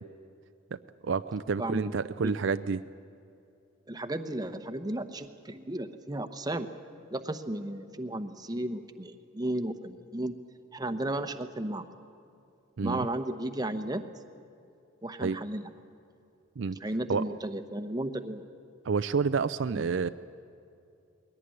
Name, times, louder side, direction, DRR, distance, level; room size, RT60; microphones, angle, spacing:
voice 1, 1.0-2.8 12.8-13.1 15.2-15.4 16.6-16.8 17.1-17.3 18.8-20.1, right 5 dB, 65° right, 12 dB, 0.5 m, -29 dB
voice 2, 1.6-1.9 2.2-2.3 3.9-6.7 7.1-10.3 10.7-11.8 12.8-14.0 15.0-15.7 16.8-18.4 19.7-19.8, right 1 dB, 20° right, 9 dB, 0.9 m, -34 dB
21.5 x 18.0 x 9.8 m, 2.6 s
head